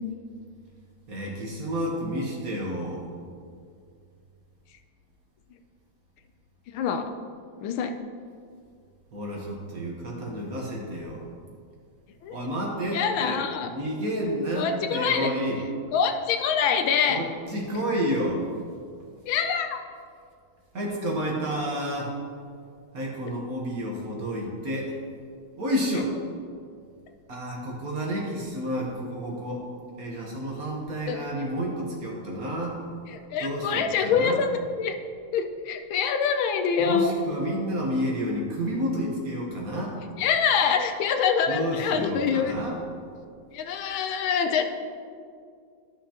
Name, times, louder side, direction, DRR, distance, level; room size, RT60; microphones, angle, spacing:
voice 1, 1.1-3.1 9.1-11.3 12.3-13.4 13.7-15.6 17.1-18.4 20.7-22.2 22.9-25.0 25.6-26.2 27.3-29.7 30.0-32.8 33.4-34.4 36.8-40.0 41.5-42.8, equal, 50° right, -2 dB, 1.3 m, -30 dB
voice 2, 6.7-7.1 7.6-7.9 12.2-12.4 12.9-13.7 14.6-15.3 15.9-17.2 19.3-19.8 31.1-31.3 33.3-34.5 34.8-34.9 35.3-37.1 40.2-42.5 43.5-44.6, left 7 dB, 80° left, 6 dB, 1.3 m, -25 dB
13.0 x 5.9 x 2.9 m, 2.2 s
omnidirectional pair, 2.3 m